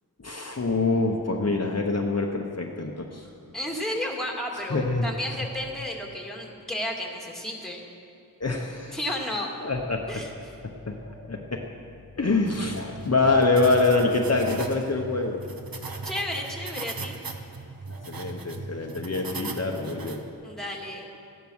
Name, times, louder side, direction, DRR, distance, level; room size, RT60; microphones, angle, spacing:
voice 1, 0.2-3.3 4.7-5.1 8.4-9.0 9.6-10.0 10.6-11.6 12.2-15.4 15.9-16.1 17.9-20.2, left 3 dB, 45° left, 1 dB, 0.9 m, -25 dB
voice 2, 3.5-7.8 8.9-9.5 10.1-10.3 16.0-17.2 20.4-21.1, left 1 dB, ahead, -1 dB, 2.1 m, -32 dB
sound 1, 12.4-20.3, right 3 dB, 70° right, 1.0 m, -38 dB
14.5 x 10.5 x 6.2 m, 2.5 s
wide cardioid pair, 45°, 36 cm